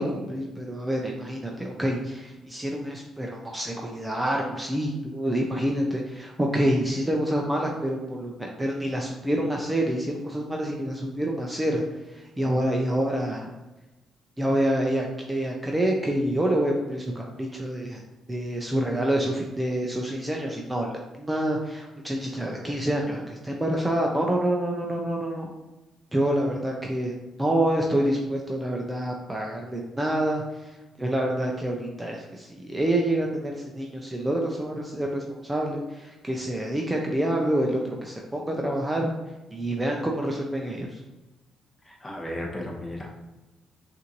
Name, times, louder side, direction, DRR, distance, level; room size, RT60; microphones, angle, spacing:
voice 1, 0.0-11.8 12.1-13.5 14.4-18.0 18.3-20.9 21.2-25.5 26.1-27.1 27.4-39.1 39.5-41.0, right 1 dB, 15° right, 0 dB, 0.5 m, -27 dB
voice 2, 41.8-43.1, left 1 dB, 20° left, -2 dB, 1.1 m, -34 dB
5.4 x 2.6 x 3.0 m, 1.1 s
cardioid pair, 90°, 0 cm